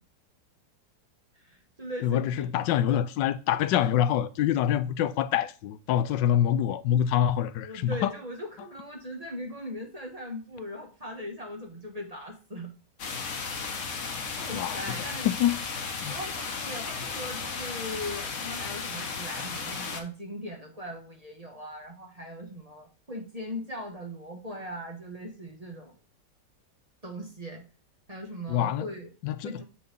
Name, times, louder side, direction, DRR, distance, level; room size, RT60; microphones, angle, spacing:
voice 1, 1.4-2.6 7.6-12.7 14.4-15.3 16.1-25.9 27.0-27.6 28.1-29.1 29.4-29.6, equal, 25° right, 1.3 m, -39 dB
voice 2, 2.0-8.1 14.5-14.8 15.2-15.6 16.0-16.2 28.5-28.9 29.2-29.6, left 10 dB, 85° left, 1.2 m, -25 dB
sound 1, 13.0-20.0, left 5 dB, 50° left, 1.3 m, -35 dB
6.5 x 4.3 x 5.3 m
omnidirectional pair, 1.9 m